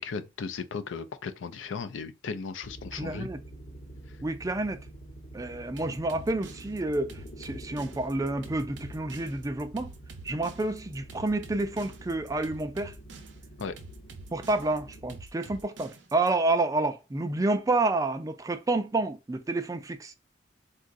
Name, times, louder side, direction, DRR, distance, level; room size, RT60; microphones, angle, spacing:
voice 1, 0.0-3.3 13.6-13.8, left 5 dB, 80° left, 0.4 m, -36 dB
sound 1, 2.6-15.2, right 1 dB, 50° left, 0.9 m, -47 dB
voice 2, 2.9-3.4 4.2-4.8 5.3-9.9 10.2-12.9 14.3-20.1, right 2 dB, 20° right, 0.3 m, -29 dB
sound 2, 5.8-16.3, right 3 dB, 70° right, 0.6 m, -47 dB
3.8 x 2.3 x 2.5 m
head